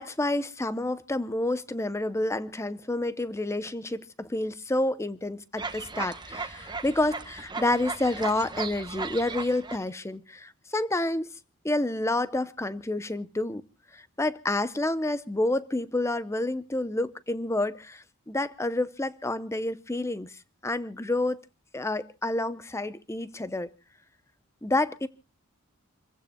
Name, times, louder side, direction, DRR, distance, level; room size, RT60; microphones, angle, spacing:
voice 1, 0.0-11.3 11.6-13.6 13.9-20.3 20.6-21.5 21.7-23.7 24.6-25.1, left 2 dB, 10° left, 0.7 m, -29 dB
sound 1, 5.6-9.8, right 4 dB, 20° right, 1.0 m, -36 dB
28.5 x 15.5 x 2.2 m
head